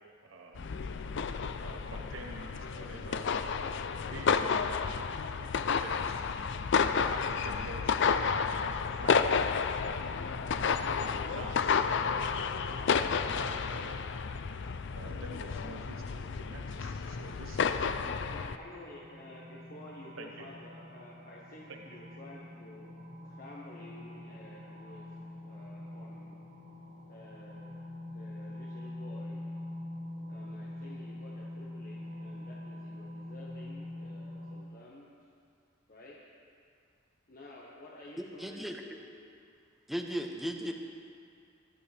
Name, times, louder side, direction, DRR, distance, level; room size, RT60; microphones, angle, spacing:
voice 1, 0.2-0.7 1.6-6.3 7.1-9.8 10.3-13.9 14.9-18.7 20.2-20.5 21.7-22.0, right 2 dB, 80° right, 1 dB, 1.0 m, -48 dB
sound 1, 0.6-18.6, left 5 dB, 60° left, 0.5 m, -31 dB
sound 2, 17.0-34.6, left 1 dB, 50° right, 1.2 m, -45 dB
voice 2, 18.3-22.9 23.2-25.1 25.4-26.4 27.1-27.8 28.1-29.5 30.3-35.1 35.9-36.2 37.3-39.4, left 1 dB, 45° left, -5 dB, 1.3 m, -51 dB
voice 3, 38.2-38.8 39.9-40.7, equal, ahead, 2 dB, 0.8 m, -36 dB
21.5 x 11.5 x 3.4 m, 2.3 s
head